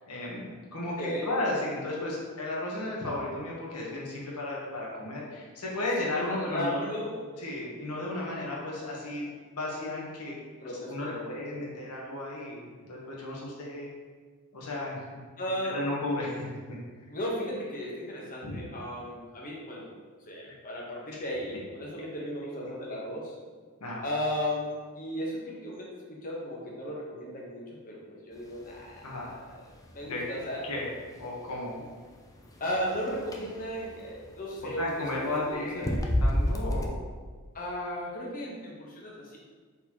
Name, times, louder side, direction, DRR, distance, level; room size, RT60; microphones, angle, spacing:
voice 1, 0.1-6.9 7.4-10.3 10.8-13.9 14.5-15.1 15.7-16.4 18.4-18.6 23.8-24.0 29.0-29.3 30.0-30.2 30.6-30.9 31.2-31.8 34.8-36.9, left 2 dB, 85° left, -4 dB, 1.1 m, -34 dB
voice 2, 0.8-1.3 6.0-7.3 10.6-11.5 15.4-15.8 17.1-19.9 20.2-23.4 24.0-29.4 29.9-30.6 31.8-31.9 32.6-36.0 37.5-39.4, equal, 40° left, -3 dB, 1.0 m, -35 dB
sound 1, 28.4-36.9, equal, 15° left, 0.3 m, -33 dB
4.4 x 4.0 x 2.9 m, 1.5 s
head